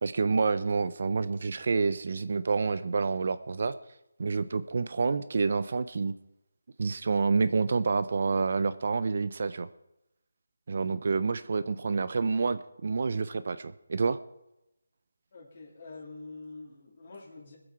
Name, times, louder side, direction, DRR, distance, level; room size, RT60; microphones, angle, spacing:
voice 1, 0.0-3.7 4.2-6.1 6.8-9.7 10.7-14.2, right 4 dB, 45° right, 14 dB, 0.4 m, -28 dB
voice 2, 15.3-17.6, left 3 dB, 35° left, 1 dB, 2.5 m, -46 dB
21.0 x 7.8 x 4.6 m, 0.90 s
figure-of-eight pair, 175°, 0 cm